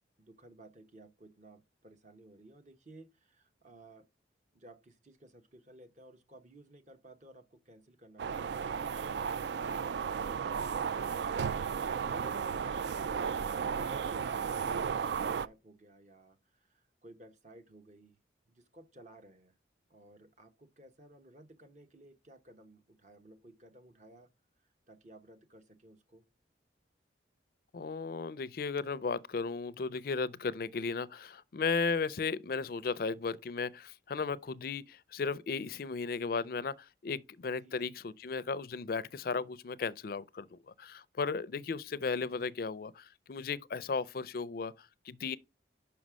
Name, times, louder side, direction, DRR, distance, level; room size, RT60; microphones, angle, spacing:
voice 1, 0.2-4.1 4.5-9.9 12.1-18.2 18.5-19.6 19.9-24.3 24.6-26.2 37.6-37.9, right 1 dB, 40° right, 1.0 m, -56 dB
sound 1, 8.2-15.5, right 6 dB, 70° right, 0.3 m, -34 dB
voice 2, 27.7-45.4, left 4 dB, 50° left, 0.4 m, -35 dB
5.8 x 5.2 x 6.1 m
head